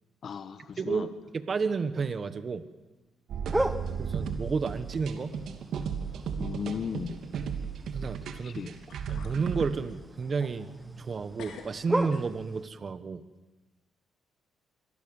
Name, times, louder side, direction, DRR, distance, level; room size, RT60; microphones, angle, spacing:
voice 1, 0.2-1.1 6.4-7.2 8.4-8.7, left 6 dB, 55° left, 10 dB, 1.3 m, -36 dB
sound 1, 0.7-1.6 1.9-2.4 2.8-2.9 3.8-3.9 4.6-4.7 5.1-5.5 5.8-5.9 8.4-8.5 8.9-9.4 9.9-11.1 11.4-12.7, left 6 dB, 80° left, 4.3 m, -51 dB
voice 2, 0.8-1.1 1.3-2.6 3.6-3.7 4.0-5.3 7.9-8.6 9.1-13.2, right 5 dB, 40° right, 12 dB, 1.4 m, -31 dB
sound 2, 3.3-9.7, right 6 dB, 70° right, 2.7 m, -34 dB
sound 3, 3.5-12.6, right 1 dB, 10° right, 1.0 m, -37 dB
26.5 x 22.0 x 7.3 m, 1.1 s
cardioid pair, 90°, 0 cm